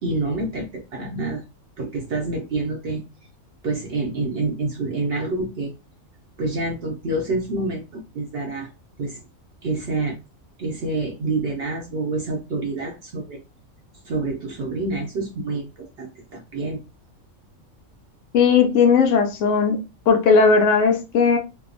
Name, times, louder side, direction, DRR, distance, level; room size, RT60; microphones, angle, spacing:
voice 1, 0.0-1.4 1.8-3.0 3.6-5.7 6.4-8.7 9.0-9.2 9.6-10.2 10.6-13.4 14.0-16.8, right 2 dB, 60° right, 0.7 m, -27 dB
voice 2, 18.3-21.4, left 5 dB, 70° left, 0.9 m, -17 dB
2.8 x 2.0 x 2.5 m
omnidirectional pair, 1.4 m